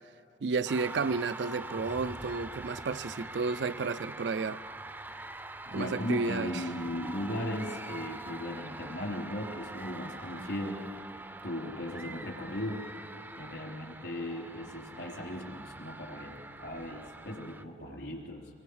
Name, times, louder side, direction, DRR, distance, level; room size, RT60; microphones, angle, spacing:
voice 1, 0.4-4.6 5.7-6.6 17.8-18.0, right 4 dB, 80° right, 0.5 m, -32 dB
sound 1, 0.7-17.6, right 2 dB, 10° right, 0.4 m, -44 dB
voice 2, 5.7-10.8 11.4-12.9 13.4-18.5, left 1 dB, 75° left, 3.7 m, -37 dB
26.5 x 22.5 x 4.9 m
head